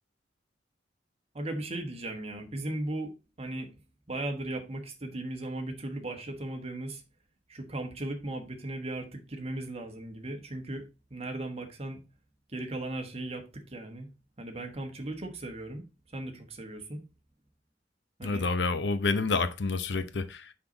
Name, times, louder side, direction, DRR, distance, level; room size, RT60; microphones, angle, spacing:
voice 1, 1.3-3.7 4.1-7.0 7.5-10.8 11.1-12.0 12.5-14.1 14.4-15.9 16.1-17.0 18.2-18.4, right 1 dB, 35° right, 1.3 m, -37 dB
voice 2, 18.2-20.5, left 4 dB, 70° left, 0.7 m, -28 dB
5.9 x 5.6 x 3.8 m
head